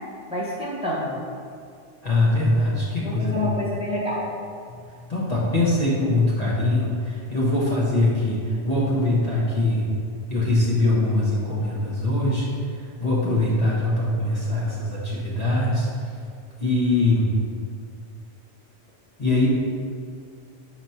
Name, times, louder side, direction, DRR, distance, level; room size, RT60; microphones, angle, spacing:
voice 1, 0.3-1.2 3.0-4.2 13.2-13.4, left 1 dB, 5° right, -7 dB, 0.9 m, -28 dB
voice 2, 2.0-3.5 5.1-8.4 8.6-9.9 10.3-12.5 13.0-15.9 16.6-17.3 19.2-19.5, left 2 dB, 35° left, -7 dB, 1.0 m, -22 dB
5.9 x 3.0 x 5.5 m, 2.3 s
omnidirectional pair, 1.2 m